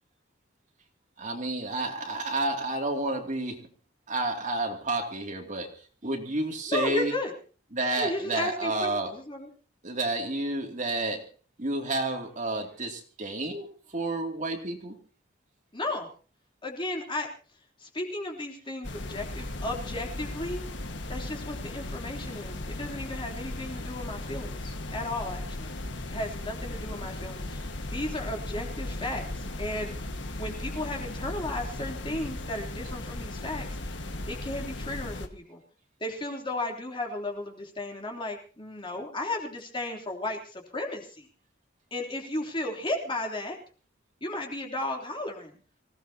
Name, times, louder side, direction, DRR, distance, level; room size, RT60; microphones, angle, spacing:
voice 1, 1.2-3.7 4.1-5.7 6.0-7.1 7.7-9.1 9.8-11.3 11.6-13.7 13.9-15.0, right 2 dB, 40° right, 2 dB, 2.7 m, -30 dB
voice 2, 6.7-7.3 8.0-9.5 15.7-16.1 16.6-17.3 17.8-20.6 21.1-25.7 26.1-29.9 30.4-33.9 34.3-35.6 36.0-41.3 41.9-43.6 44.2-45.5, left 1 dB, 25° left, 1 dB, 3.3 m, -34 dB
sound 1, 18.8-35.3, left 1 dB, 70° left, 1.7 m, -37 dB
26.0 x 17.0 x 2.9 m, 0.37 s
head